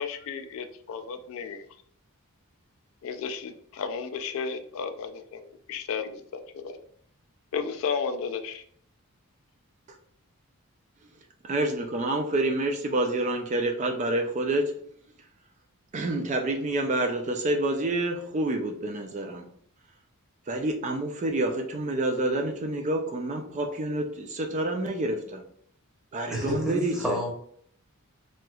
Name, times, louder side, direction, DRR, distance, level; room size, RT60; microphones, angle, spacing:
voice 1, 0.0-1.7 3.0-6.8 7.5-8.6, left 6 dB, 65° left, 8 dB, 0.3 m, -33 dB
voice 2, 11.4-14.8 15.9-19.4 20.5-25.4 26.1-27.2, right 2 dB, 35° right, 3 dB, 0.3 m, -28 dB
voice 3, 26.3-27.3, equal, ahead, -3 dB, 0.9 m, -29 dB
3.1 x 2.9 x 2.2 m, 0.64 s
head